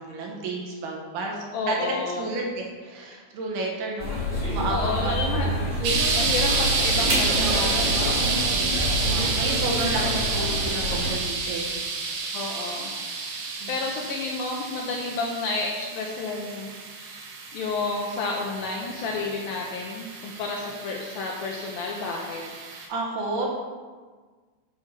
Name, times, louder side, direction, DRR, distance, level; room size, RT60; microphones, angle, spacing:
voice 1, 0.0-4.2 4.5-5.2 5.8-6.3 8.2-11.8 13.6-13.7 22.9-23.6, right 2 dB, 70° right, -1 dB, 2.9 m, -31 dB
voice 2, 1.5-2.3 4.7-5.5 5.8-5.9 6.2-8.2 12.3-13.4 13.7-22.4, left 3 dB, 85° left, -1 dB, 2.0 m, -31 dB
sound 1, 4.0-11.1, equal, 25° right, 0.9 m, -27 dB
sound 2, 5.8-22.9, right 4 dB, 85° right, 3.6 m, -29 dB
9.2 x 4.5 x 5.7 m, 1.5 s
omnidirectional pair, 5.1 m